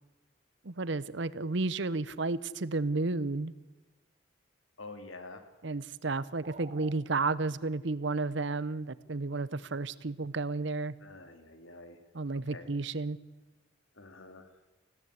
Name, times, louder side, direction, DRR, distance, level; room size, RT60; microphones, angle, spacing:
voice 1, 0.6-3.5 5.6-10.9 12.1-13.2, right 3 dB, 65° right, 18 dB, 0.8 m, -32 dB
voice 2, 4.8-5.5 11.0-12.0 12.5-12.7 14.0-14.5, left 2 dB, 80° left, 8 dB, 2.5 m, -47 dB
sound 1, 6.4-7.0, right 4 dB, 35° right, 1.1 m, -48 dB
20.0 x 16.0 x 8.2 m, 1.2 s
head